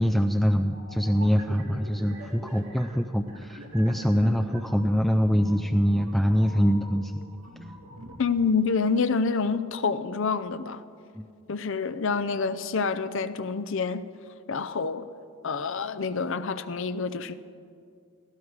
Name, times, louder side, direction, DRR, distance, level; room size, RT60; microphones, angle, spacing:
voice 1, 0.0-7.1 11.1-11.3, equal, ahead, 6 dB, 0.3 m, -24 dB
sound 1, 0.6-8.2, right 1 dB, 85° right, 2.2 m, -45 dB
voice 2, 8.2-10.8 11.5-14.0 14.5-15.1 15.4-17.3, left 5 dB, 60° left, 13 dB, 0.6 m, -27 dB
17.5 x 16.0 x 4.8 m, 2.3 s
head